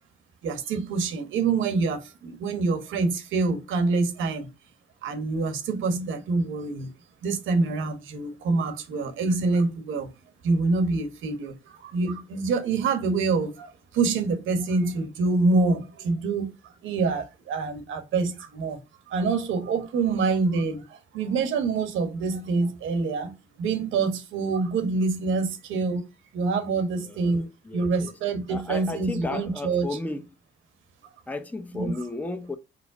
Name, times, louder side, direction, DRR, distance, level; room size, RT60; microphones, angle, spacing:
voice 1, 0.4-4.5 5.0-6.9 7.2-10.1 10.4-16.5 16.8-18.8 19.1-26.0 26.3-29.9 31.7-31.9, right 4 dB, 80° right, 1.2 m, -26 dB
voice 2, 27.0-28.2 28.5-30.3 31.3-32.6, left 2 dB, 10° left, 0.6 m, -34 dB
5.1 x 2.0 x 4.7 m
cardioid pair, 90°, 20 cm